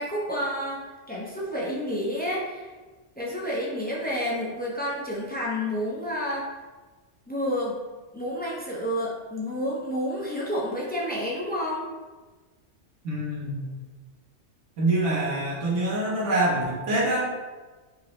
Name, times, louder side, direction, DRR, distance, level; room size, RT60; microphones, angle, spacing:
voice 1, 0.0-2.7 3.2-6.5 7.3-7.8 8.1-11.9, equal, 15° left, -5 dB, 0.4 m, -30 dB
voice 2, 13.0-13.6 14.8-17.3, right 1 dB, 85° right, -6 dB, 1.3 m, -25 dB
5.1 x 2.1 x 3.0 m, 1.3 s
omnidirectional pair, 1.2 m